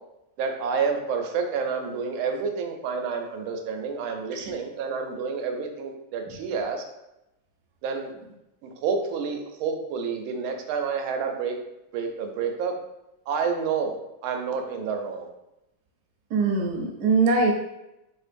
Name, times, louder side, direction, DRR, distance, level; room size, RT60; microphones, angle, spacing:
voice 1, 0.4-6.8 7.8-8.1 8.6-11.6 11.9-12.7 13.3-14.0 14.2-15.3, right 5 dB, 85° right, 4 dB, 1.4 m, -29 dB
voice 2, 16.3-17.5, right 4 dB, 70° right, 0 dB, 1.0 m, -22 dB
4.3 x 2.5 x 2.5 m, 0.90 s
omnidirectional pair, 2.2 m